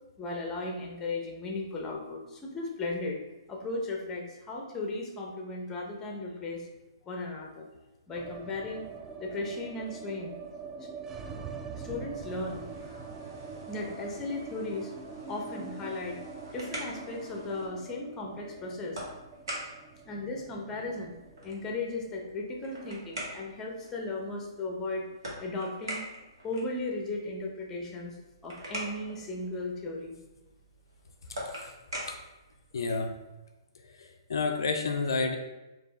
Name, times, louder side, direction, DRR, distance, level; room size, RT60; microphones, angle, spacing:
voice 1, 0.2-3.2 3.5-6.7 7.1-7.7 8.1-8.9 9.2-10.3 10.8-10.9 11.8-12.6 13.7-14.9 15.3-16.2 16.5-19.0 20.1-21.2 21.4-25.1 25.4-26.1 26.4-28.2 28.4-30.2, left 2 dB, 15° left, 1 dB, 0.7 m, -36 dB
sound 1, 8.1-24.3 24.5-24.6 24.9-25.6, right 5 dB, 15° right, 0.3 m, -44 dB
sound 2, 12.2-17.7, right 2 dB, 45° right, 1.3 m, -51 dB
sound 3, 16.4-33.2, right 1 dB, 70° right, 1.3 m, -44 dB
voice 2, 32.7-33.1 34.0-35.4, left 4 dB, 70° left, 3 dB, 0.4 m, -29 dB
4.2 x 2.5 x 3.2 m, 1.0 s
figure-of-eight pair, 125°, 2 cm